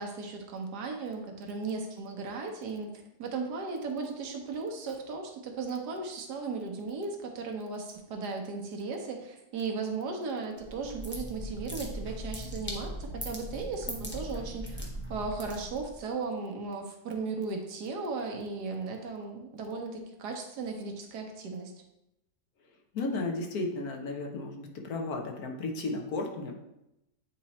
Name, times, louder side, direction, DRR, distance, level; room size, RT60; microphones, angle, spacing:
voice 1, 0.0-21.7, right 4 dB, 75° right, 3 dB, 1.5 m, -36 dB
sound 1, 10.6-16.0, equal, 10° left, 0.6 m, -39 dB
voice 2, 22.9-26.6, left 2 dB, 65° left, 2 dB, 1.3 m, -34 dB
8.5 x 2.9 x 4.1 m, 0.87 s
omnidirectional pair, 1.8 m